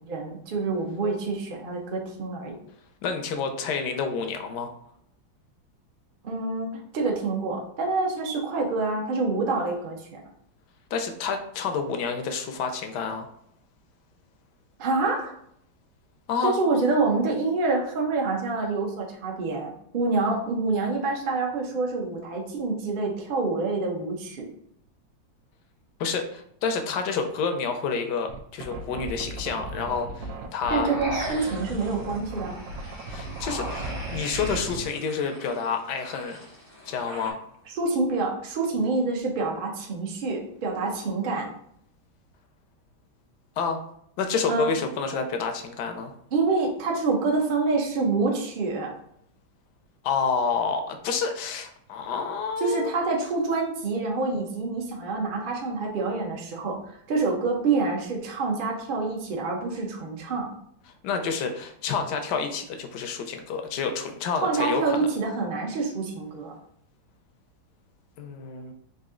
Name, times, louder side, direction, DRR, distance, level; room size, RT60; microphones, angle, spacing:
voice 1, 0.0-2.6 6.2-10.2 14.8-15.3 16.4-24.5 30.7-32.6 37.7-41.5 44.5-44.7 46.3-48.9 52.6-60.5 64.4-66.6, right 3 dB, 60° right, 0 dB, 0.5 m, -27 dB
voice 2, 3.0-4.7 10.9-13.3 16.3-16.6 26.0-30.9 33.1-36.4 36.9-37.4 43.6-43.8 44.2-46.1 50.0-53.0 61.0-65.0 68.2-68.7, left 5 dB, 70° left, 5 dB, 1.0 m, -29 dB
sound 1, 28.3-34.9, right 2 dB, 90° right, 1.3 m, -36 dB
sound 2, 30.7-37.3, equal, 25° left, 0.3 m, -39 dB
4.0 x 2.6 x 3.6 m, 0.69 s
omnidirectional pair, 2.1 m